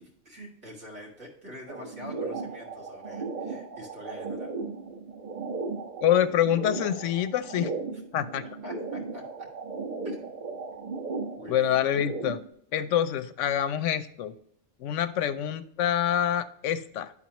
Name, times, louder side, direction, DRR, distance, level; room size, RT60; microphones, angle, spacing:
voice 1, 0.0-4.5 8.6-9.2 10.0-10.3 11.4-11.9, left 1 dB, 70° right, -3 dB, 2.3 m, -45 dB
sound 1, 1.7-12.5, right 4 dB, 40° right, 1.1 m, -36 dB
voice 2, 6.0-7.7 8.1-8.4 11.5-12.4 12.7-14.3 14.8-17.1, left 10 dB, 85° left, 12 dB, 0.9 m, -26 dB
11.5 x 4.1 x 2.9 m, 0.72 s
omnidirectional pair, 1.2 m